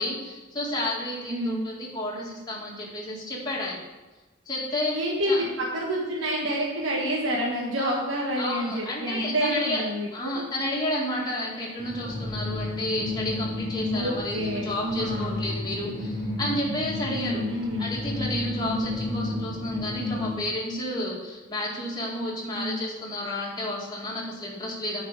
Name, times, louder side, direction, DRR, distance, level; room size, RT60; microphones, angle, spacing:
voice 1, 0.0-3.8 4.5-5.0 5.3-5.4 7.8-8.0 8.4-9.8 10.1-17.4 17.8-25.0, left 1 dB, 20° left, -4 dB, 2.2 m, -31 dB
voice 2, 1.3-1.6 4.9-10.4 13.9-15.4 17.1-17.9 18.6-19.0 22.5-22.8, equal, 80° right, -3 dB, 1.4 m, -28 dB
sound 1, 11.8-20.4, left 2 dB, 45° right, 2.4 m, -32 dB
9.5 x 4.9 x 6.4 m, 1.2 s
head